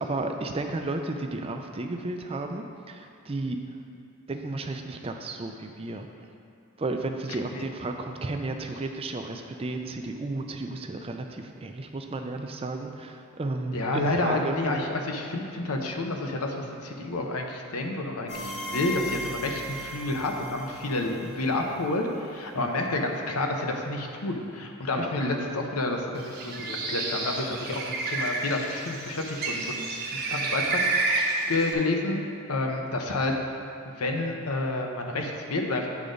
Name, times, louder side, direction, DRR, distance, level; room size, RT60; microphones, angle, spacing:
voice 1, 0.0-3.8 4.3-6.1 6.8-14.6 22.5-22.7 24.9-25.1, right 2 dB, 25° right, 4 dB, 0.4 m, -33 dB
voice 2, 13.7-16.6 16.8-29.9 30.1-31.1 31.5-32.2 32.5-33.4 33.8-35.9, left 2 dB, 85° left, 2 dB, 0.8 m, -29 dB
sound 1, 18.3-22.0, equal, 50° left, 1.2 m, -37 dB
Bird, 26.2-31.7, right 3 dB, 45° right, 0.8 m, -30 dB
8.4 x 3.9 x 5.0 m, 2.5 s
head